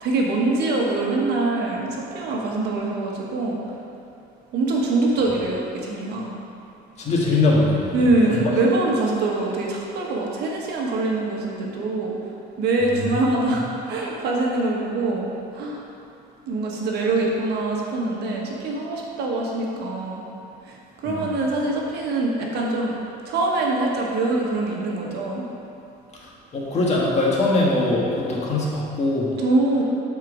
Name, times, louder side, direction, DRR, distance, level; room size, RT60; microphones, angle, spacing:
voice 1, 0.0-3.6 4.5-6.3 7.9-12.1 12.6-15.3 15.5-15.8 16.5-20.2 20.6-20.7 21.0-22.9 23.2-25.5 29.4-29.8, right 2 dB, 75° right, -2 dB, 1.4 m, -24 dB
voice 2, 7.0-8.4 13.5-13.6 21.0-21.3 26.2-26.3 26.5-29.3, left 2 dB, 40° left, -4 dB, 1.7 m, -22 dB
7.4 x 4.5 x 5.0 m, 2.7 s
cardioid pair, 110°, 17 cm